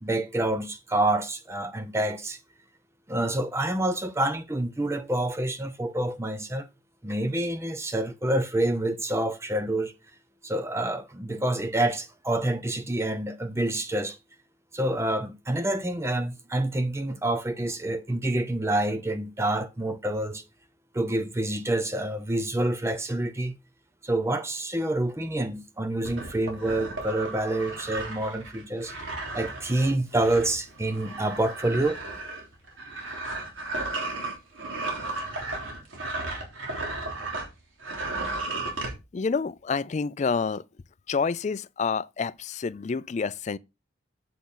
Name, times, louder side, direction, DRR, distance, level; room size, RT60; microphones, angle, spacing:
voice 1, 0.0-2.4 3.1-6.7 7.0-10.0 10.4-14.2 14.7-20.4 20.9-23.5 24.0-28.9 29.3-32.0, right 1 dB, 15° right, 0.5 m, -27 dB
sound 1, 26.0-37.5 37.8-38.9, right 2 dB, 75° right, 3.3 m, -34 dB
voice 2, 39.1-40.6 41.1-43.6, left 5 dB, 35° left, 0.3 m, -28 dB
8.4 x 6.7 x 3.9 m
head